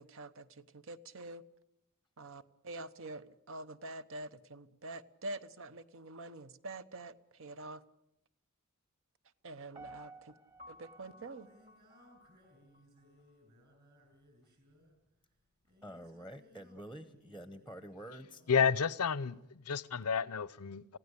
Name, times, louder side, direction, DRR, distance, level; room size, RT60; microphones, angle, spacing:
voice 1, 0.0-1.4 2.2-7.8 9.4-10.3 10.7-11.5, right 2 dB, 60° right, 1.0 m, -46 dB
Piano, 9.7-12.8 13.3-13.4, right 2 dB, 25° right, 1.7 m, -54 dB
Singing, 10.5-19.5, left 1 dB, 45° right, 7.0 m, -64 dB
voice 2, 15.8-18.4, equal, ahead, 0.9 m, -48 dB
voice 3, 18.5-21.0, left 6 dB, 85° left, 0.7 m, -31 dB
25.5 x 16.5 x 8.2 m
head